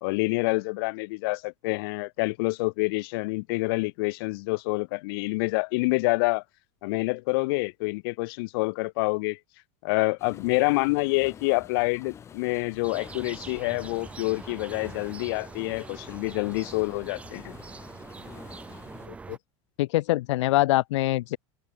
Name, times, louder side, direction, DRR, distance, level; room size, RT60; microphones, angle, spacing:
voice 1, 0.0-6.4 6.8-9.4 9.8-17.5, left 25 dB, 55° left, 1.3 m, -27 dB
sound 1, 10.2-19.1, left 8 dB, 20° left, 5.2 m, -48 dB
sound 2, 12.8-19.4, right 4 dB, 10° right, 0.9 m, -43 dB
voice 2, 19.8-21.4, left 17 dB, 90° left, 0.7 m, -24 dB
open air
supercardioid pair, 175°, 15 cm